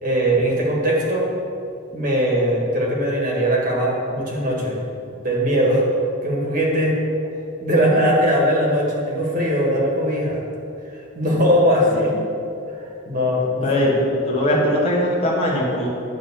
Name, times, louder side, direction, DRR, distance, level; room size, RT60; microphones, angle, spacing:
voice 1, 0.0-1.2 1.9-4.8 5.2-5.8 6.2-7.0 7.6-10.4 11.1-12.1 13.0-13.9, equal, 40° right, -3 dB, 1.7 m, -20 dB
voice 2, 13.6-15.9, equal, 30° left, -4 dB, 1.4 m, -20 dB
10.5 x 3.7 x 7.1 m, 2.5 s
head